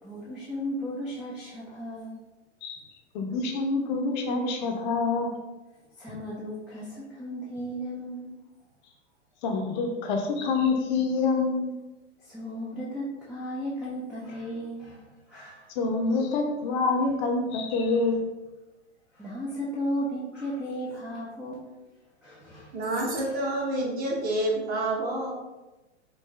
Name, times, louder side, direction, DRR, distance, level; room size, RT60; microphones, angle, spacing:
voice 1, 0.0-2.2 6.0-8.4 12.2-15.7 19.1-21.8 22.2-22.8 23.1-23.3, equal, 5° right, -7 dB, 0.4 m, -35 dB
voice 2, 3.1-5.3 9.4-11.7 15.8-18.2, left 3 dB, 40° left, 3 dB, 0.6 m, -26 dB
voice 3, 22.7-25.3, right 1 dB, 25° right, 0 dB, 1.0 m, -28 dB
4.6 x 2.6 x 3.5 m, 1.1 s
hypercardioid pair, 115°, 36 cm